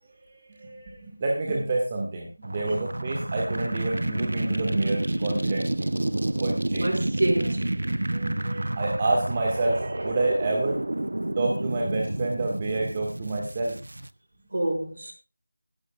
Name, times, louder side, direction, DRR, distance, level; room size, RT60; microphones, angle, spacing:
voice 1, 0.2-5.9 6.3-7.0 8.1-10.8 11.4-13.8, right 2 dB, 20° right, 1.9 m, -28 dB
sound 1, 2.4-14.1, right 1 dB, 75° right, 0.8 m, -29 dB
voice 2, 6.8-7.7 14.5-15.1, right 1 dB, 55° right, 5.3 m, -27 dB
20.0 x 11.5 x 2.5 m
figure-of-eight pair, 175°, 0 cm